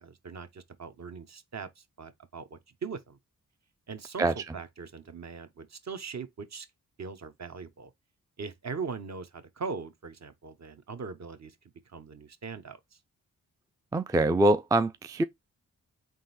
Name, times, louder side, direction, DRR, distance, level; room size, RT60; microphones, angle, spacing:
voice 1, 0.0-3.2 3.9-6.7 7.0-7.9 8.4-11.6 11.9-12.8, right 5 dB, 45° right, 0.8 m, -40 dB
voice 2, 13.9-15.2, right 2 dB, 10° right, 0.3 m, -24 dB
3.8 x 2.6 x 4.1 m
supercardioid pair, 40°, 36 cm